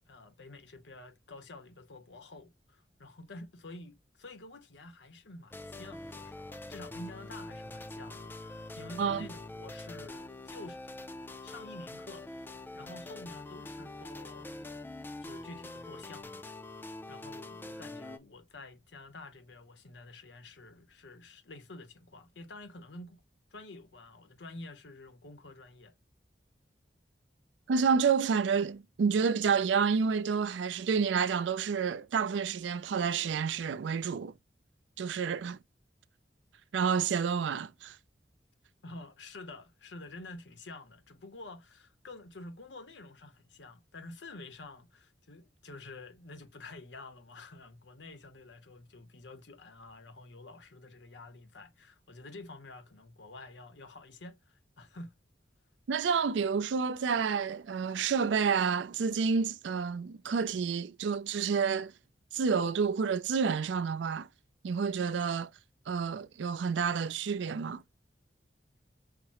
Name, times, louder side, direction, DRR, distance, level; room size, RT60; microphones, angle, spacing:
voice 1, 0.1-10.8 11.4-12.3 12.7-14.7 15.2-16.4 17.1-23.2 23.5-25.9 38.8-55.1, left 2 dB, 80° left, 0.8 m, -49 dB
sound 1, 5.5-18.2, left 2 dB, 10° left, 0.3 m, -44 dB
voice 2, 27.7-34.3 35.0-35.6 36.7-38.0 55.9-61.9 62.3-64.3 64.6-65.5 65.9-67.8, right 6 dB, 85° right, 0.4 m, -29 dB
5.8 x 2.0 x 2.9 m
head